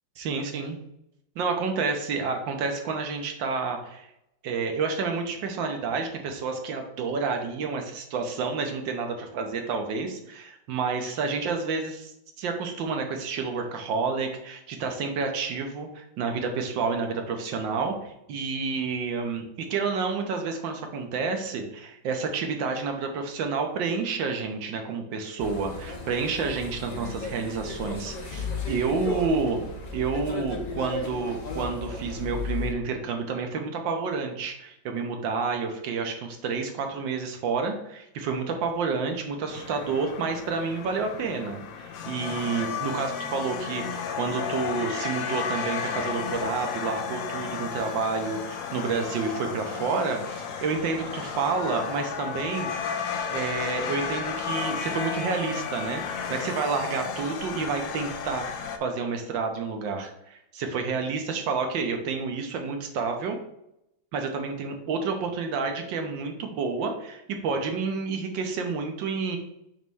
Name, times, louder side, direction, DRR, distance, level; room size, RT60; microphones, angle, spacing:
voice 1, 0.2-0.8 1.3-4.1 4.4-29.6 29.9-52.7 53.3-58.5 58.8-63.4 64.1-69.4, right 4 dB, 80° right, 4 dB, 1.6 m, -29 dB
sound 1, 25.4-32.7, left 3 dB, 70° left, 0.4 m, -35 dB
sound 2, 39.5-58.8, left 6 dB, 85° left, 1.4 m, -33 dB
5.9 x 3.2 x 5.3 m, 0.80 s
omnidirectional pair, 2.0 m